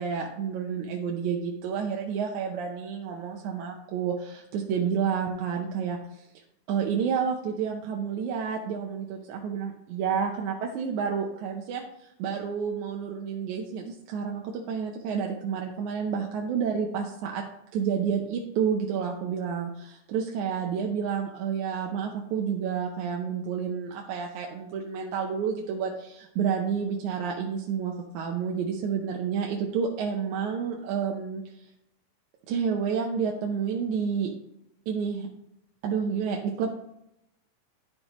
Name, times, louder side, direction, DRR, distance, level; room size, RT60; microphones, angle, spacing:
voice 1, 0.0-6.3 6.7-17.4 17.7-31.7 32.5-34.3 34.9-35.3 35.8-36.7, right 6 dB, 80° right, 1 dB, 2.1 m, -30 dB
11.5 x 5.1 x 3.0 m, 0.83 s
omnidirectional pair, 3.5 m